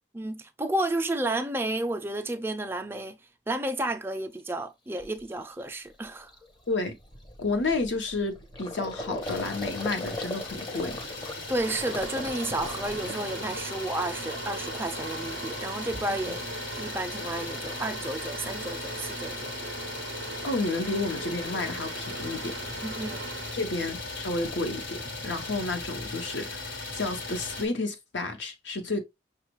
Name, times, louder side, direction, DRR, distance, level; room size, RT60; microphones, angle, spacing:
voice 1, 0.1-3.2 3.5-6.3 11.5-16.5 16.8-19.5 22.8-23.2, right 1 dB, 10° right, 0.4 m, -32 dB
Gurgling, 4.4-4.5 5.0-5.2 5.6-5.8 6.0-14.1 14.4-15.1, left 1 dB, 25° left, 0.7 m, -40 dB
voice 2, 6.7-7.0 7.4-11.0 16.2-16.3 20.4-22.6 23.5-29.0, left 3 dB, 70° left, 0.9 m, -31 dB
Idling, 9.2-27.7, left 3 dB, 85° left, 1.3 m, -38 dB
sound 1, 11.6-23.9, right 5 dB, 70° right, 0.4 m, -40 dB
6.0 x 2.3 x 3.0 m
head